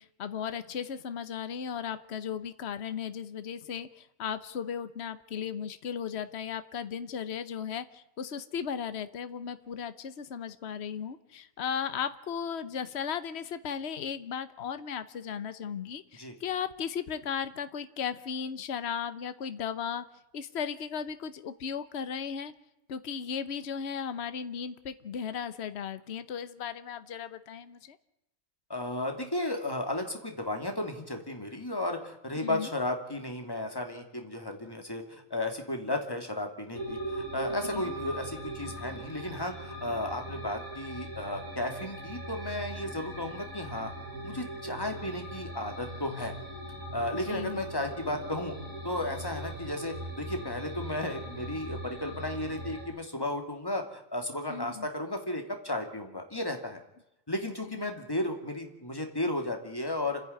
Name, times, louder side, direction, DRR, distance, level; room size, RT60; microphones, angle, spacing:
voice 1, 0.0-20.0 20.3-22.5 22.9-28.0 32.4-32.7 37.7-37.9 47.1-47.6 54.5-54.9 57.7-57.8, left 7 dB, 55° left, 12 dB, 1.2 m, -36 dB
voice 2, 28.7-43.9 44.2-46.3 46.9-48.5 48.8-56.8 57.3-60.2, left 1 dB, 15° left, 4 dB, 2.7 m, -34 dB
sound 1, 36.7-52.8, right 1 dB, 85° right, 7.5 m, -40 dB
29.0 x 10.5 x 9.6 m, 0.88 s
omnidirectional pair, 1.4 m